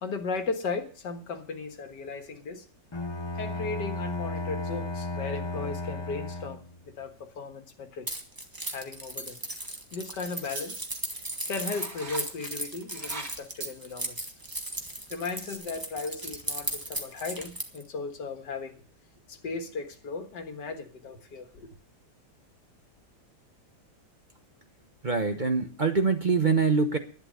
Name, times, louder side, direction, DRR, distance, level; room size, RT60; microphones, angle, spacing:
voice 1, 0.0-2.7 3.4-8.2 8.7-9.4 9.9-10.8 11.5-14.3 15.1-18.8 19.3-21.7, left 4 dB, 85° left, 2.1 m, -36 dB
Bowed string instrument, 2.9-6.9, left 2 dB, 30° left, 0.5 m, -34 dB
Keys jangling, 8.1-17.8, right 1 dB, 15° right, 1.5 m, -36 dB
sound 1, 10.4-11.0 11.5-12.2 12.5-14.9 15.3-15.6, right 3 dB, 70° right, 3.4 m, -41 dB
voice 2, 25.0-27.0, right 4 dB, 35° right, 0.9 m, -24 dB
11.5 x 10.5 x 6.4 m
omnidirectional pair, 1.8 m